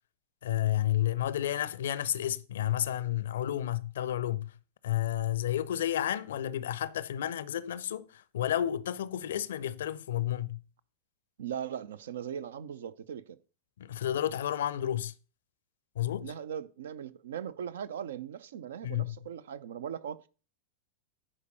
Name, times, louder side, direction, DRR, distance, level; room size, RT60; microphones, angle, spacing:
voice 1, 0.4-4.6 4.8-10.6 13.8-15.1 16.0-16.3 18.8-19.2, left 12 dB, 60° left, 0.5 m, -31 dB
voice 2, 11.4-13.4 16.2-20.2, right 8 dB, 60° right, 0.6 m, -39 dB
9.9 x 4.4 x 6.6 m
figure-of-eight pair, 90°, 0 cm